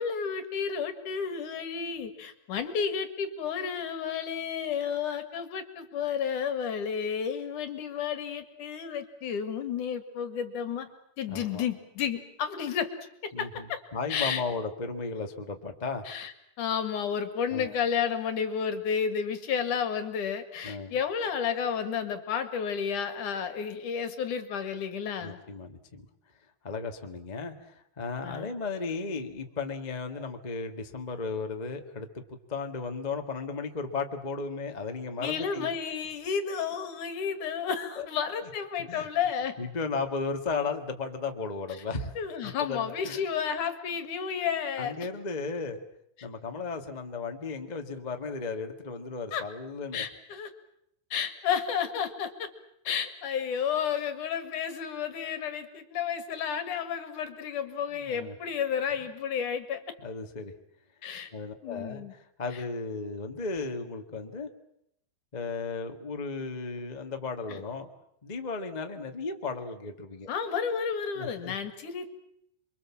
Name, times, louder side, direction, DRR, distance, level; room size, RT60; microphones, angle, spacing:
voice 1, 0.0-10.9 11.2-12.9 13.2-13.8 14.1-14.4 16.1-16.3 16.6-25.4 28.2-28.5 35.2-39.6 42.2-44.9 49.3-49.4 49.9-50.5 51.1-52.5 52.8-59.8 61.0-61.3 61.6-62.1 62.5-62.6 67.5-67.6 70.3-72.1, left 7 dB, 65° left, 9 dB, 3.2 m, -31 dB
voice 2, 11.3-11.6 13.3-13.6 13.9-16.1 17.5-17.7 20.6-20.9 25.2-26.1 26.6-35.7 38.0-38.1 38.9-39.1 39.6-42.1 42.4-43.2 44.8-45.8 46.2-50.0 57.9-58.3 60.0-60.5 61.3-64.5 65.3-67.9 68.2-70.3 71.1-71.5, left 4 dB, 20° left, 5 dB, 1.1 m, -35 dB
28.0 x 24.0 x 7.4 m, 0.74 s
omnidirectional pair, 3.9 m